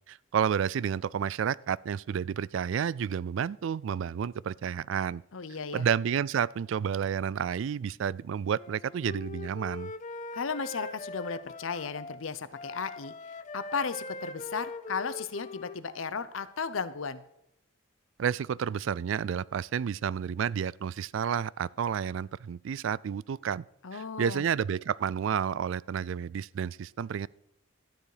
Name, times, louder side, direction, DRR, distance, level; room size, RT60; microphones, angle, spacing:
voice 1, 0.1-5.2 5.7-9.9 18.2-23.6 23.9-27.3, right 8 dB, 70° right, 0.3 m, -30 dB
voice 2, 5.3-5.9 10.3-13.1 13.5-17.2 23.8-24.4, left 5 dB, 85° left, 0.8 m, -35 dB
Wind instrument woodwind instrument, 8.5-12.2 12.5-16.2, left 3 dB, 40° left, 0.5 m, -42 dB
12.5 x 9.2 x 4.9 m
head